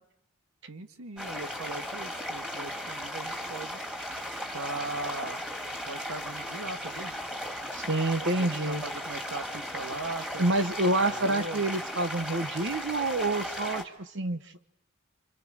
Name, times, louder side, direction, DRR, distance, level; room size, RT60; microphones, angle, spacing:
voice 1, 0.7-3.8 4.5-5.4 5.9-7.2 8.2-10.5 11.0-11.7, right 3 dB, 85° right, 8 dB, 1.8 m, -39 dB
sound 1, 1.2-13.8, equal, 5° right, 2.5 m, -36 dB
voice 2, 7.7-8.8 10.4-14.6, right 2 dB, 55° right, 10 dB, 1.2 m, -28 dB
29.0 x 27.0 x 6.4 m, 0.84 s
head